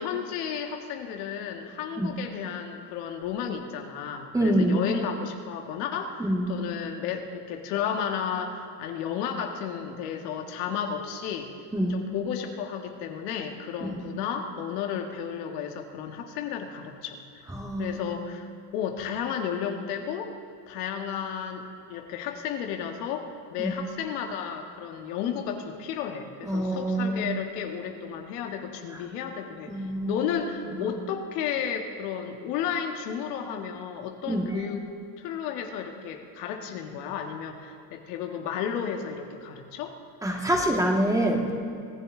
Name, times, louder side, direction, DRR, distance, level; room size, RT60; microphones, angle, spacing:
voice 1, 0.0-11.5 11.9-17.2 17.8-18.5 18.7-20.3 20.7-21.6 21.9-34.8 35.2-40.0, left 8 dB, 85° left, 3 dB, 1.7 m, -33 dB
voice 2, 4.3-4.8 6.2-6.5 11.7-12.0 13.8-14.0 17.5-18.0 23.6-23.7 26.4-27.3 29.7-30.2 30.8-30.9 34.3-34.6 40.2-41.5, right 1 dB, 5° right, 0 dB, 1.7 m, -26 dB
24.5 x 15.0 x 3.8 m, 2.3 s
cardioid pair, 135°, 46 cm